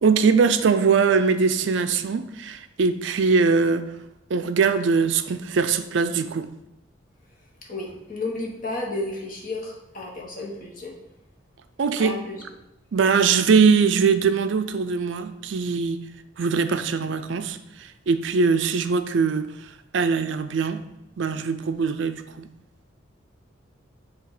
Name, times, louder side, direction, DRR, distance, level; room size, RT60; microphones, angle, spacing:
voice 1, 0.0-3.8 4.3-6.5 11.8-12.2 12.9-16.0 16.4-17.6 18.1-19.5 19.9-20.8 21.2-22.5, right 5 dB, 60° right, 10 dB, 0.4 m, -21 dB
voice 2, 7.7-11.0 12.0-12.4, left 2 dB, 45° left, -2 dB, 1.5 m, -32 dB
8.0 x 2.9 x 4.9 m, 0.91 s
head